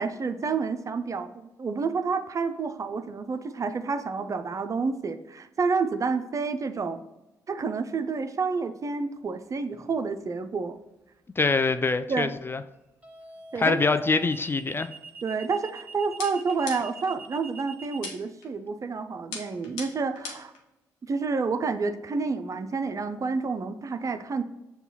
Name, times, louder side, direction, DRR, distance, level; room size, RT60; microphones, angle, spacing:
voice 1, 0.0-7.0 7.5-10.8 12.1-12.3 13.5-13.8 15.2-20.5 21.1-24.4, right 4 dB, 40° right, 0.4 m, -29 dB
sound 1, 9.7-10.1 13.0-18.1, right 4 dB, 15° right, 0.8 m, -44 dB
voice 2, 11.4-12.6 13.6-14.9, left 3 dB, 25° left, 0.3 m, -24 dB
sound 2, 16.2-17.1 18.0-18.5 19.3-20.6, left 4 dB, 85° left, 0.8 m, -39 dB
6.8 x 2.3 x 2.8 m
hypercardioid pair, 45°, 9 cm